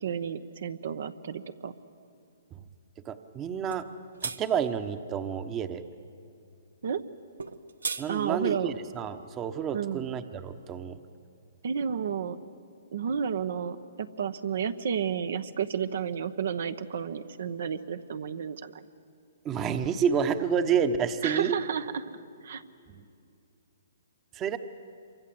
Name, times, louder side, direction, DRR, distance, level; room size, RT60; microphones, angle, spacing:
voice 1, 0.0-1.7 6.8-7.0 8.1-8.7 9.7-10.1 11.6-12.4 12.9-18.8 21.2-22.6, right 7 dB, 65° right, 10 dB, 1.0 m, -31 dB
voice 2, 3.0-3.8 4.2-5.8 8.0-11.0 19.4-21.6 22.9-23.0 24.3-24.6, right 7 dB, 20° right, 10 dB, 1.0 m, -29 dB
sound 1, 3.7-3.9 4.2-4.4 7.4-8.1, right 4 dB, 85° right, 1.1 m, -33 dB
27.0 x 24.0 x 7.8 m, 2.5 s
hypercardioid pair, 140°, 0 cm